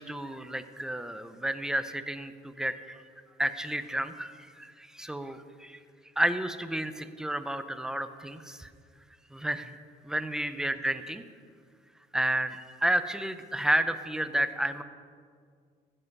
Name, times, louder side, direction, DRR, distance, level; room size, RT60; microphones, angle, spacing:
voice 1, 0.0-3.0 3.4-5.8 6.2-8.7 9.3-9.8 10.1-11.2 12.1-14.8, right 1 dB, 5° right, 11 dB, 0.5 m, -31 dB
15.0 x 5.6 x 5.3 m, 2.1 s
cardioid pair, 110°, 17 cm